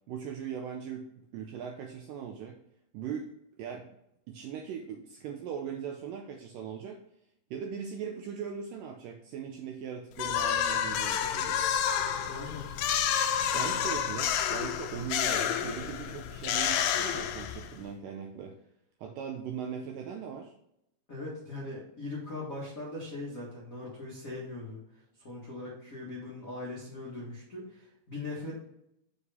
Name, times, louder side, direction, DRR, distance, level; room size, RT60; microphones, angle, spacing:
voice 1, 0.1-1.1 1.3-2.6 2.9-3.9 4.3-7.0 7.5-11.6 13.5-18.6 19.0-20.5, right 7 dB, 85° right, 3 dB, 1.9 m, -39 dB
sound 1, 10.2-17.8, left 9 dB, 85° left, 1.9 m, -29 dB
voice 2, 12.2-12.7 13.5-13.8 21.1-24.8 25.2-28.5, left 2 dB, 70° left, -6 dB, 0.7 m, -40 dB
6.6 x 4.5 x 3.5 m, 0.79 s
omnidirectional pair, 4.5 m